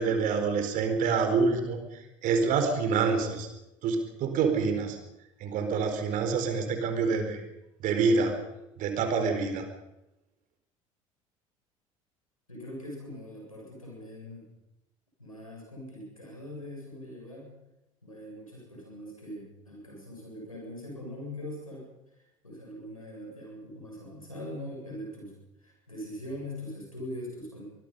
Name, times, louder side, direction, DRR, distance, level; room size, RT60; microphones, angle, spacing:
voice 1, 0.0-3.5 3.8-5.0 5.4-7.4 7.8-8.4 8.8-9.6, right 5 dB, 50° right, 7 dB, 4.7 m, -27 dB
voice 2, 12.5-14.5 15.2-17.6 18.0-21.9 22.1-27.6, left 1 dB, 90° left, -1 dB, 7.4 m, -42 dB
24.0 x 22.0 x 5.6 m, 0.92 s
figure-of-eight pair, 60°, 17 cm